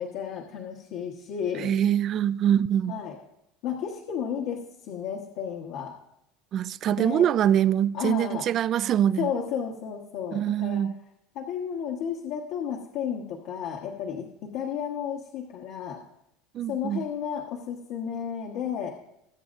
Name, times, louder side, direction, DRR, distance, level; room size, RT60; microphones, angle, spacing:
voice 1, 0.0-1.7 2.9-3.2 3.6-5.9 6.9-7.3 7.9-8.5 9.2-10.8 11.3-16.0 16.7-18.9, left 8 dB, 55° left, 1.3 m, -32 dB
voice 2, 1.6-3.0 6.5-9.3 10.3-10.9 16.5-17.1, right 10 dB, 30° right, 0.3 m, -24 dB
21.5 x 8.4 x 2.6 m
cardioid pair, 160°, 0 cm